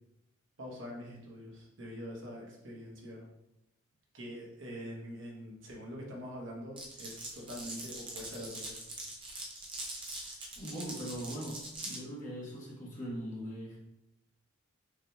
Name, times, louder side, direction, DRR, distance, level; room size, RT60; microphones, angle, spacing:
voice 1, 0.6-3.2 4.1-8.8, equal, 65° right, -2 dB, 1.0 m, -44 dB
Glass, 6.8-12.0, right 2 dB, 25° right, 0.6 m, -43 dB
voice 2, 10.0-13.8, equal, 35° left, -5 dB, 1.2 m, -41 dB
5.9 x 2.9 x 2.2 m, 0.85 s
head